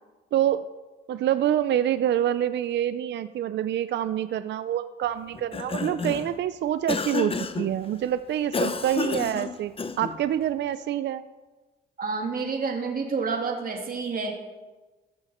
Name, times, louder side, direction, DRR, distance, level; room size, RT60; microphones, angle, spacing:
voice 1, 0.3-0.7 1.1-11.2, right 11 dB, 60° right, 13 dB, 0.5 m, -26 dB
Cough, 5.3-6.3 6.9-7.7 8.5-10.2, left 4 dB, 30° left, 0.9 m, -30 dB
voice 2, 12.0-14.3, right 4 dB, 45° right, 2 dB, 2.7 m, -29 dB
14.5 x 14.0 x 4.4 m, 1.2 s
cardioid pair, 90°, 20 cm